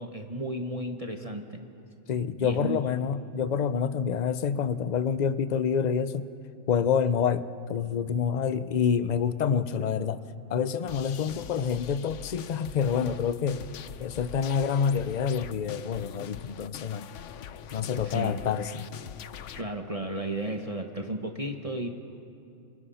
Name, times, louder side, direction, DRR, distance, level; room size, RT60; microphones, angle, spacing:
voice 1, 0.0-1.6 2.4-2.8 18.0-18.4 19.6-21.9, right 1 dB, 30° right, 3 dB, 1.3 m, -33 dB
voice 2, 2.1-6.3 6.7-10.2 10.5-13.6 14.0-17.1 17.7-18.9, left 7 dB, 40° left, 13 dB, 0.7 m, -27 dB
sound 1, 10.9-19.6, left 9 dB, 70° left, 1.0 m, -43 dB
29.5 x 27.0 x 5.7 m, 2.7 s
omnidirectional pair, 1.3 m